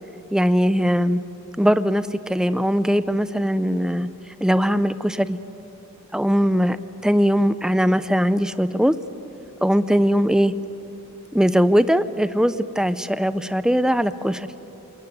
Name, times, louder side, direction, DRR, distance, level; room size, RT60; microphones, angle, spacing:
voice 1, 0.3-1.2 1.6-4.1 4.4-5.4 6.1-6.8 7.0-9.0 9.6-10.5 11.3-14.5, equal, 5° right, 13 dB, 0.6 m, -20 dB
27.5 x 21.5 x 9.4 m, 2.9 s
head